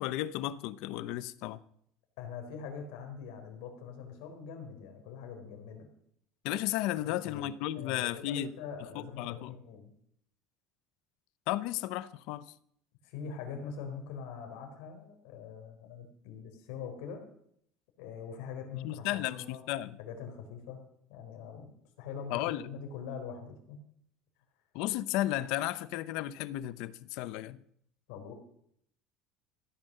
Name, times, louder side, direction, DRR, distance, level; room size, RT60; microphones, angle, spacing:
voice 1, 0.0-1.6 6.4-8.5 8.9-9.5 11.5-12.4 18.7-20.0 22.3-22.6 24.7-27.6, left 14 dB, 60° left, 0.7 m, -34 dB
voice 2, 2.2-5.9 7.0-9.9 13.0-17.2 18.0-19.7 20.0-20.8 21.1-23.8 28.1-28.3, left 6 dB, 80° left, 3.9 m, -43 dB
16.0 x 9.5 x 6.7 m
cardioid pair, 175°, 0 cm